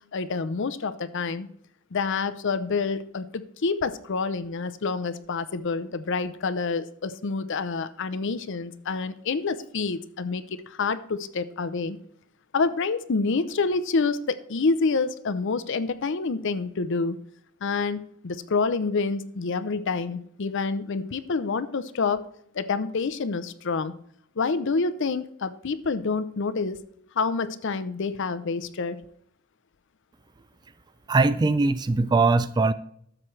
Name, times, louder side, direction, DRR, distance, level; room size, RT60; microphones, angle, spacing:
voice 1, 0.1-1.5 1.9-12.0 12.5-17.2 17.6-22.2 22.5-23.9 24.4-26.8 27.2-29.0, left 4 dB, 60° left, 14 dB, 0.6 m, -27 dB
voice 2, 31.1-32.7, right 3 dB, 20° right, 15 dB, 0.3 m, -21 dB
12.5 x 7.3 x 3.2 m, 0.70 s
head